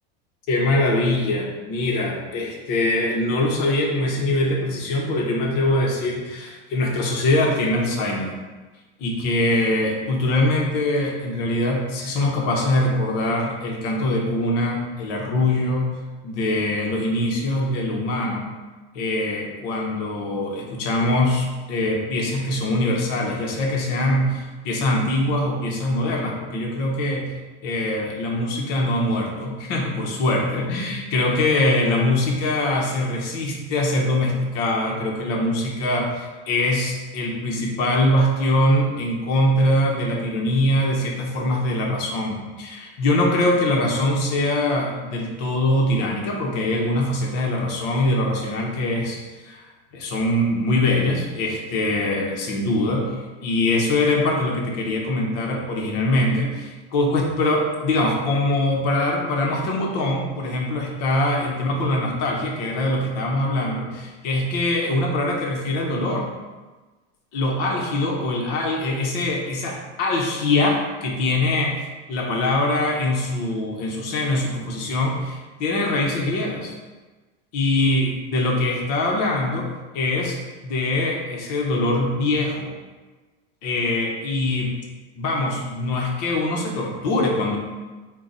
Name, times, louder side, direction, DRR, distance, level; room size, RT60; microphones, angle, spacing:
voice 1, 0.5-8.3 9.0-15.9 16.2-18.5 18.9-27.3 27.6-49.2 49.4-49.6 49.9-53.1 53.4-66.3 67.3-76.7 77.5-80.4 80.6-82.7 83.6-84.7 85.2-87.6, left 1 dB, 50° left, -1 dB, 0.9 m, -23 dB
3.8 x 2.3 x 3.9 m, 1.3 s
supercardioid pair, 145°, 30 cm